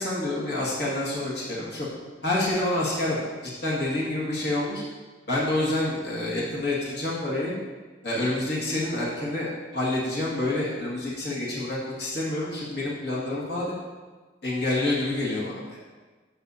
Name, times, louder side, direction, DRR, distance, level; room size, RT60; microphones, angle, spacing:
voice 1, 0.0-1.9 2.2-3.2 3.6-4.8 5.3-7.5 8.0-13.7 14.4-15.8, left 2 dB, 60° left, -6 dB, 2.0 m, -28 dB
12.0 x 6.6 x 2.8 m, 1.3 s
head